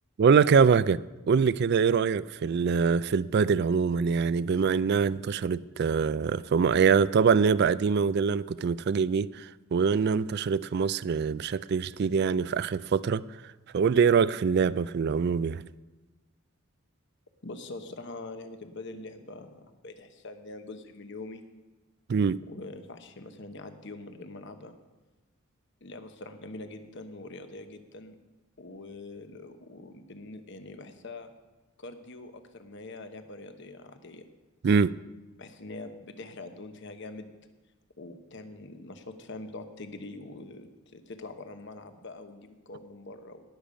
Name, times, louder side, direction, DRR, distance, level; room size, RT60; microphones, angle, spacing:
voice 1, 0.2-1.0 1.3-13.2 13.7-15.6 22.1-22.4 34.6-34.9, right 6 dB, 50° right, 0.3 m, -24 dB
voice 2, 17.4-21.4 22.5-24.8 25.8-28.2 28.6-31.3 31.8-34.3 35.4-37.3 38.0-40.7 40.9-43.4, left 2 dB, 55° left, 1.0 m, -43 dB
19.0 x 7.0 x 5.1 m
head